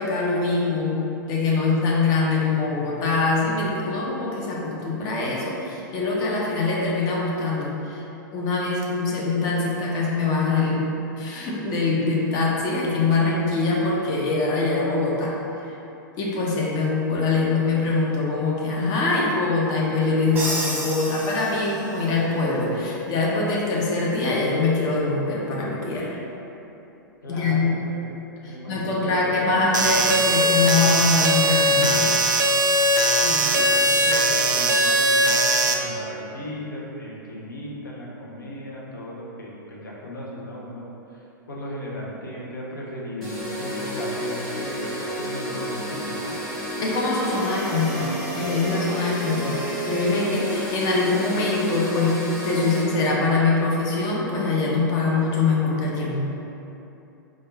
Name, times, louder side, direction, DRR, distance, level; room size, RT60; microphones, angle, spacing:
voice 1, 0.0-8.0 8.3-10.8 11.2-15.3 16.2-26.2 27.3-27.8 28.4-32.1 46.8-56.3, left 3 dB, 35° left, -4 dB, 0.7 m, -23 dB
Crash cymbal, 20.4-22.1, right 1 dB, 15° right, 1.0 m, -30 dB
voice 2, 27.2-28.1 28.4-29.6 33.1-46.4, equal, 70° left, -4 dB, 0.8 m, -36 dB
sound 1, 29.7-35.7, right 1 dB, 65° right, 0.4 m, -20 dB
sound 2, 43.2-52.8, equal, ahead, 1.4 m, -30 dB
3.6 x 2.5 x 3.8 m, 3.0 s
figure-of-eight pair, 100°, 11 cm